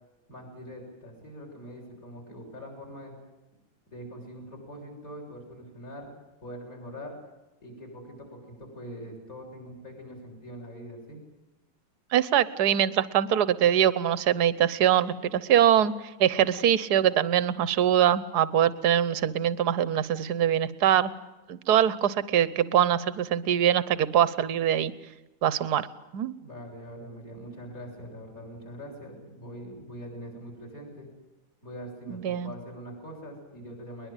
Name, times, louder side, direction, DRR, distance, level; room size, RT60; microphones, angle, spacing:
voice 1, 0.3-3.1 3.9-6.1 6.4-7.1 7.6-11.2 26.4-31.1 31.6-34.1, equal, 40° left, 0 dB, 7.6 m, -43 dB
voice 2, 12.1-15.9 16.2-21.1 21.5-24.9 25.4-25.9 26.1-26.3 32.1-32.5, right 10 dB, 55° right, 17 dB, 1.4 m, -23 dB
22.0 x 21.0 x 9.1 m, 1.0 s
omnidirectional pair, 2.2 m